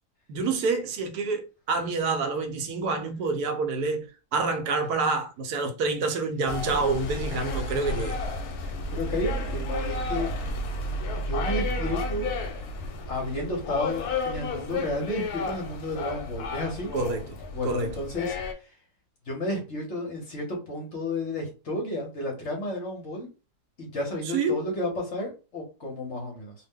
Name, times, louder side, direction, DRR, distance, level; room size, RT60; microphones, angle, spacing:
voice 1, 0.3-8.2 16.9-17.3 17.6-17.9 24.3-24.6, right 3 dB, 75° right, 1.1 m, -27 dB
sound 1, 6.5-18.5, left 2 dB, 70° left, 1.0 m, -32 dB
voice 2, 8.6-10.3 11.3-12.3 13.1-16.9 17.5-18.4 19.3-23.3 23.8-26.5, left 1 dB, 55° left, 0.9 m, -32 dB
2.7 x 2.0 x 3.5 m
omnidirectional pair, 1.7 m